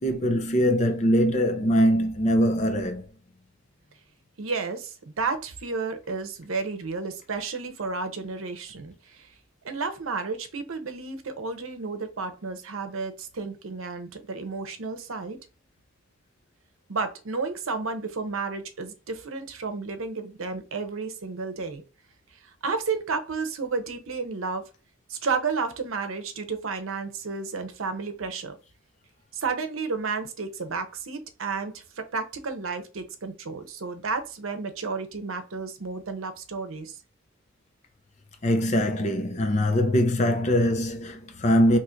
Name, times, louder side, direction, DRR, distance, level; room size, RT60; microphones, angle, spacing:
voice 1, 0.0-3.1 38.4-41.8, equal, 35° left, 0.6 m, -22 dB
voice 2, 4.4-9.3 9.6-15.4 16.9-21.8 22.6-24.6 25.1-28.6 29.3-37.0, right 4 dB, 80° right, 0.7 m, -32 dB
2.9 x 2.5 x 4.3 m
head